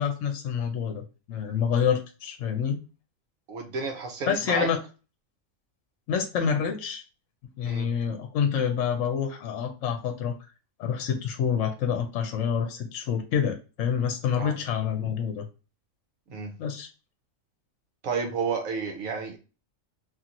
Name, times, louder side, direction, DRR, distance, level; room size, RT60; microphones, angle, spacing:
voice 1, 0.0-2.8 4.3-4.8 6.1-7.0 7.6-10.5 10.8-15.5 16.6-16.9, left 7 dB, 70° left, 6 dB, 0.9 m, -27 dB
voice 2, 3.5-4.7 7.6-7.9 14.4-14.5 16.3-16.5 18.0-19.4, right 5 dB, 80° right, 2 dB, 1.2 m, -31 dB
2.9 x 2.7 x 2.5 m, 0.32 s
omnidirectional pair, 1.4 m